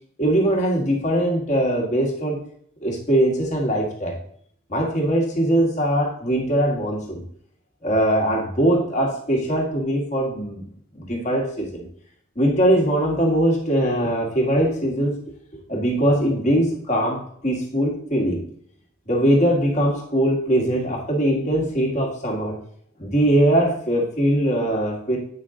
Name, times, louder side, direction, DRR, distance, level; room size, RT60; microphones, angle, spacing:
voice 1, 0.2-2.4 2.8-4.2 4.7-7.2 7.8-10.6 10.9-11.9 12.4-15.2 15.7-18.5 19.1-22.6 23.0-25.2, right 1 dB, 35° left, -1 dB, 1.8 m, -21 dB
8.4 x 5.7 x 3.8 m, 0.62 s
head